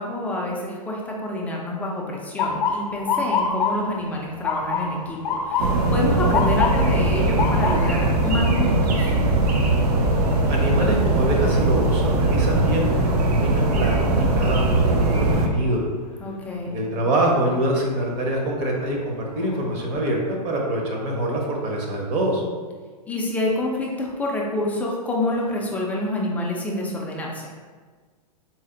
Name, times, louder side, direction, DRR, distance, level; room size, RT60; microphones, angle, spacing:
voice 1, 0.0-9.1 16.2-16.8 23.1-27.5, left 1 dB, 5° left, -3 dB, 0.3 m, -27 dB
Motor vehicle (road) / Siren, 2.4-14.3 14.7-15.2 16.0-16.3 18.1-18.4 18.9-19.0 19.4-20.1, left 5 dB, 55° left, 0.6 m, -29 dB
sound 1, 5.6-15.5, right 2 dB, 70° right, 0.6 m, -20 dB
voice 2, 10.5-15.8 16.6-22.4, right 1 dB, 35° right, -1 dB, 0.8 m, -25 dB
4.1 x 2.0 x 3.8 m, 1.5 s
hypercardioid pair, 135°, 21 cm